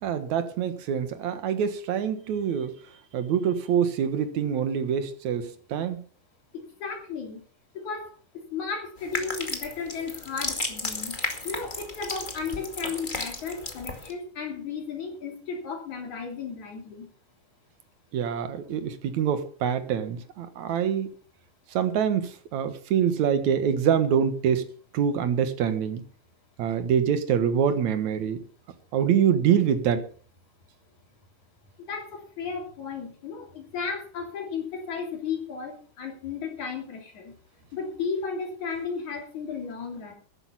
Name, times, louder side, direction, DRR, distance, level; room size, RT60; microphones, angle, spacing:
voice 1, 0.0-2.7 3.1-6.0 18.1-21.1 21.7-24.6 24.9-26.0 26.6-28.4 28.9-30.0, right 8 dB, 65° right, 10 dB, 2.6 m, -25 dB
voice 2, 6.5-7.4 7.7-11.1 11.4-17.1 31.9-37.3 37.7-40.1, left 5 dB, 60° left, 2 dB, 4.5 m, -34 dB
sound 1, 9.0-14.1, left 2 dB, 20° left, 1.8 m, -34 dB
13.0 x 11.0 x 5.7 m, 0.42 s
omnidirectional pair, 3.8 m